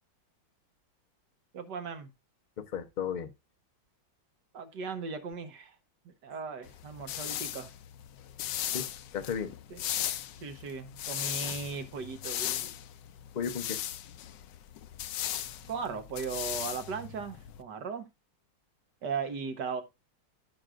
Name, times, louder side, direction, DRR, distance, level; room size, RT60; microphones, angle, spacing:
voice 1, 1.5-2.1 4.5-5.7 6.1-7.7 9.7-9.8 10.4-12.7 15.7-18.1 19.0-19.8, right 5 dB, 65° right, 1.8 m, -37 dB
voice 2, 2.6-3.3 8.7-9.5 13.3-13.8, left 7 dB, 40° left, 0.6 m, -35 dB
sound 1, 6.7-17.6, left 11 dB, 75° left, 1.3 m, -37 dB
14.0 x 6.2 x 2.5 m
omnidirectional pair, 2.0 m